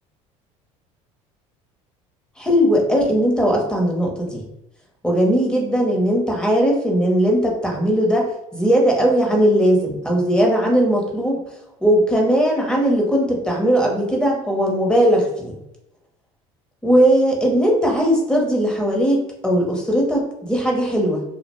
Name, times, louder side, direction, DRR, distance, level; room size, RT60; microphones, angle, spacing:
voice 1, 2.4-4.4 5.0-11.4 11.8-15.5 16.8-21.2, equal, 5° left, -1 dB, 0.8 m, -18 dB
2.2 x 2.1 x 3.0 m, 0.86 s
supercardioid pair, 85°, 16 cm